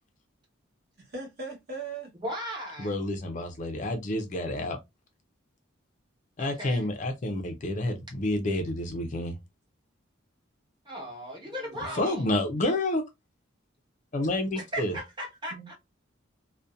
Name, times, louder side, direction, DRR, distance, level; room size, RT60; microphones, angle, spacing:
voice 1, 1.0-2.1 11.4-12.0 15.5-15.7, right 3 dB, 50° right, 1.1 m, -40 dB
voice 2, 2.2-2.9 6.4-6.9 10.8-12.3 14.5-15.7, equal, 20° right, 1.0 m, -37 dB
voice 3, 2.8-4.8 6.4-9.4 11.9-13.0 14.1-15.0, left 1 dB, 35° left, 0.4 m, -29 dB
2.6 x 2.1 x 2.3 m
head